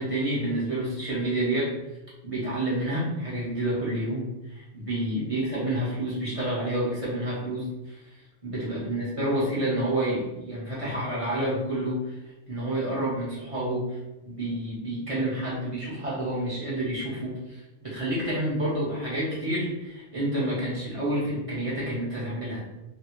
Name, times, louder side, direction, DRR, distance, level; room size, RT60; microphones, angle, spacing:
voice 1, 0.0-1.7 2.2-8.1 8.4-12.2 12.5-14.0 14.2-22.7, right 1 dB, 30° right, -8 dB, 1.1 m, -29 dB
2.8 x 2.7 x 3.0 m, 1.0 s
omnidirectional pair, 1.2 m